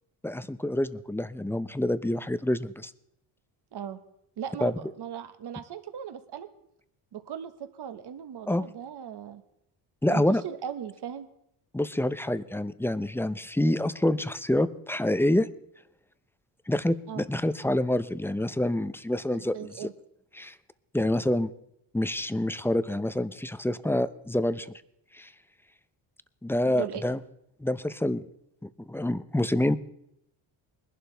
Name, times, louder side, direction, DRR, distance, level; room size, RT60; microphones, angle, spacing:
voice 1, 0.2-2.9 4.6-4.7 8.5-8.6 10.0-10.4 11.7-15.5 16.7-19.9 20.3-20.5 20.9-21.5 21.9-24.7 25.1-25.3 26.4-27.2 27.6-28.3 28.6-29.8, left 1 dB, 5° left, 13 dB, 0.6 m, -27 dB
voice 2, 4.4-6.5 7.1-9.4 10.1-11.3 17.1-17.3 19.3-19.9 26.6-27.0, right 9 dB, 50° right, 9 dB, 1.3 m, -38 dB
20.5 x 11.5 x 3.4 m, 0.77 s
cardioid pair, 80°, 50 cm